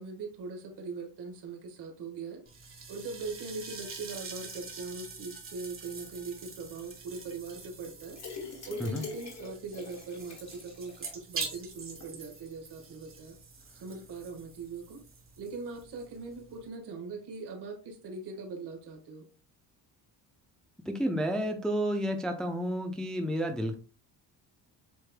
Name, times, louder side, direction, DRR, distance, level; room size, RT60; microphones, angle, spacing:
voice 1, 0.0-2.4 2.9-8.2 8.7-13.4 13.7-15.0 15.4-19.3, right 4 dB, 70° right, 3 dB, 1.5 m, -41 dB
sound 1, 2.5-16.7, right 4 dB, 30° right, 1.4 m, -45 dB
sound 2, 8.1-11.2 11.6-11.7 12.0-12.1, left 4 dB, 40° left, 1.7 m, -44 dB
voice 2, 20.9-23.7, equal, ahead, 4 dB, 0.5 m, -31 dB
7.7 x 3.1 x 2.2 m, 0.37 s
cardioid pair, 115°, 42 cm